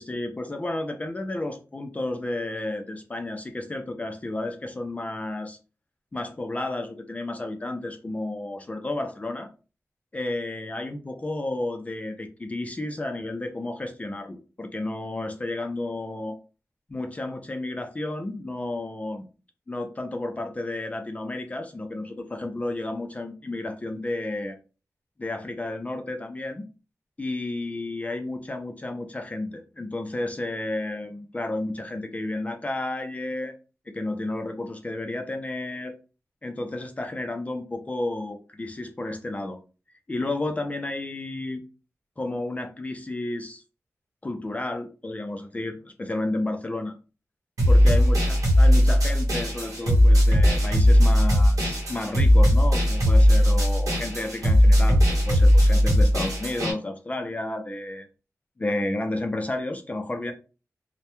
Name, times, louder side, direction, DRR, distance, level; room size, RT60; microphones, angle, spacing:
voice 1, 0.0-5.6 6.1-9.5 10.1-16.4 16.9-19.2 19.7-24.6 25.2-26.7 27.2-33.5 33.9-35.9 36.4-39.6 40.1-41.6 42.2-43.6 44.2-47.0 47.7-58.1 58.6-60.3, left 2 dB, 25° left, 5 dB, 0.3 m, -32 dB
sound 1, 47.6-56.7, equal, 85° right, 0.8 m, -18 dB
2.2 x 2.1 x 2.9 m, 0.33 s
wide cardioid pair, 90°, 6 cm